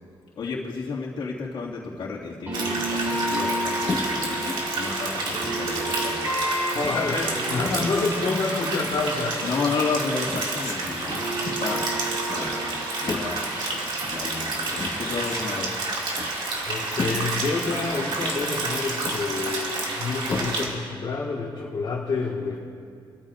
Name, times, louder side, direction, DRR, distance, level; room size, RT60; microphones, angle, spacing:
voice 1, 0.4-4.4 4.7-6.4 7.8-8.0 9.4-11.3 11.6-11.9 12.3-15.7, left 4 dB, 70° left, -5 dB, 2.3 m, -32 dB
sound 1, 2.5-10.5 10.8-15.8, right 1 dB, 25° right, 3.4 m, -33 dB
sound 2, 2.5-20.7, right 2 dB, 65° right, 2.5 m, -30 dB
sound 3, 3.7-20.9, left 3 dB, 30° left, 1.7 m, -37 dB
voice 2, 6.7-9.5 16.7-22.6, left 3 dB, 55° left, -5 dB, 1.8 m, -28 dB
26.0 x 14.0 x 2.6 m, 2.3 s
wide cardioid pair, 175°, 9 cm